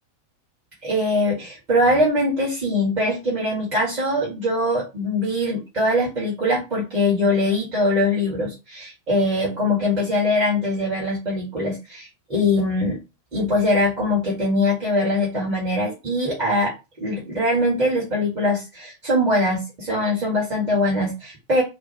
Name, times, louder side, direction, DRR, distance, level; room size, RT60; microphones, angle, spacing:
voice 1, 0.8-13.0 13.3-16.7 17.0-21.6, left 1 dB, 35° right, -6 dB, 1.7 m, -22 dB
4.6 x 2.1 x 3.0 m, 0.27 s
figure-of-eight pair, 90°, 0 cm